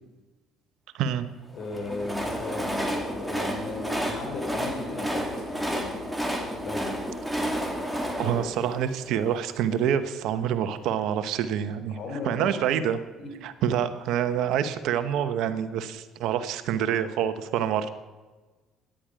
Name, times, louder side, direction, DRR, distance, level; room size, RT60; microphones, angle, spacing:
voice 1, 0.9-1.3 8.2-12.0 12.2-13.0 13.4-17.9, right 9 dB, 70° right, 11 dB, 0.9 m, -27 dB
voice 2, 1.5-5.9 6.4-6.9 8.2-8.6 11.9-12.7 13.2-13.3, left 3 dB, 60° left, 3 dB, 3.7 m, -36 dB
Train, 1.6-9.7, equal, ahead, 2.3 m, -31 dB
14.0 x 10.5 x 5.0 m, 1.3 s
supercardioid pair, 75°, 0 cm